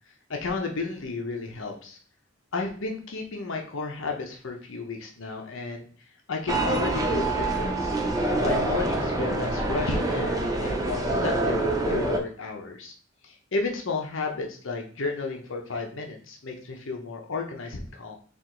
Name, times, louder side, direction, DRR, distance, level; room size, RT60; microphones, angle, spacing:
voice 1, 0.3-2.0 2.5-5.9 6.3-7.9 8.4-12.9 13.2-18.1, left 3 dB, 70° left, 2 dB, 0.8 m, -33 dB
sound 1, 6.5-12.2, right 2 dB, 20° right, 0.6 m, -26 dB
3.8 x 2.6 x 4.5 m, 0.43 s
head